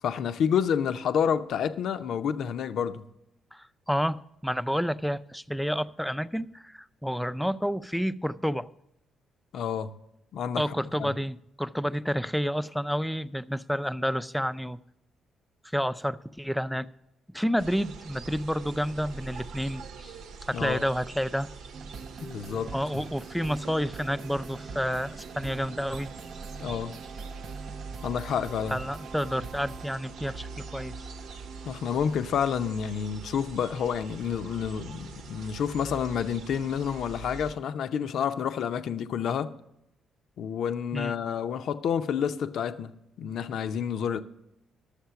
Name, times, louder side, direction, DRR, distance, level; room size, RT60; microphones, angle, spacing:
voice 1, 0.0-3.0 9.5-9.9 10.3-10.6 11.0-11.1 20.5-20.8 22.2-22.7 26.6-26.9 28.0-28.8 31.6-39.5 40.4-44.2, left 7 dB, 70° left, 0.6 m, -29 dB
voice 2, 3.5-8.7 10.6-14.8 15.6-16.9 17.3-20.2 20.5-21.5 22.7-26.1 28.7-31.1 40.9-41.1, equal, ahead, 0.4 m, -30 dB
sound 1, 17.6-37.6, right 4 dB, 80° right, 0.9 m, -44 dB
sound 2, 21.7-32.1, right 5 dB, 50° right, 0.5 m, -44 dB
11.5 x 7.3 x 5.8 m
cardioid pair, 90°, 0 cm